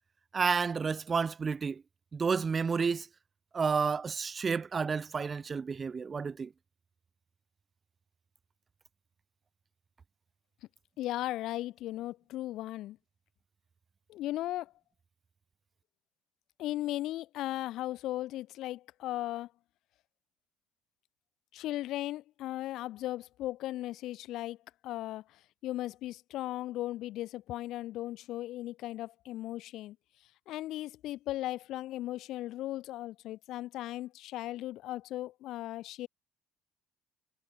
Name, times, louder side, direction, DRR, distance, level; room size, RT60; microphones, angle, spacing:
voice 1, 0.3-1.8 2.1-3.1 3.5-6.5, right 5 dB, 30° right, 1.4 m, -30 dB
voice 2, 11.0-13.0 14.1-14.7 16.6-19.5 21.5-24.6 24.8-30.0 30.5-36.1, left 15 dB, 70° left, 6.2 m, -37 dB
cardioid pair, 105°, 0 cm